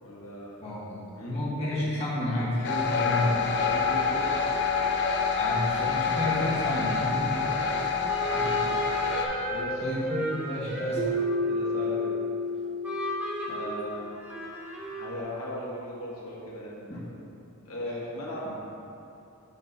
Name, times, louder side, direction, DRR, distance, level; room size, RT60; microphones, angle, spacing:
voice 1, 0.0-0.9 1.2-1.4 2.9-3.2 3.5-4.4 7.3-8.1 9.5-9.8 11.5-12.2 13.5-14.1 14.9-17.1 17.6-18.6, equal, 70° left, -6 dB, 1.4 m, -38 dB
voice 2, 0.6-3.4 5.4-7.5 8.3-8.7 9.8-11.1 16.9-17.1 18.4-18.5, left 1 dB, 30° left, -8 dB, 1.4 m, -31 dB
sound 1, 2.6-9.3, left 5 dB, 55° left, 0.6 m, -27 dB
sound 2, 8.1-12.4 12.8-15.2, right 2 dB, 10° right, 1.1 m, -34 dB
Keyboard (musical), 10.9-13.7, left 2 dB, 45° right, 1.2 m, -30 dB
8.5 x 3.1 x 5.4 m, 2.7 s
head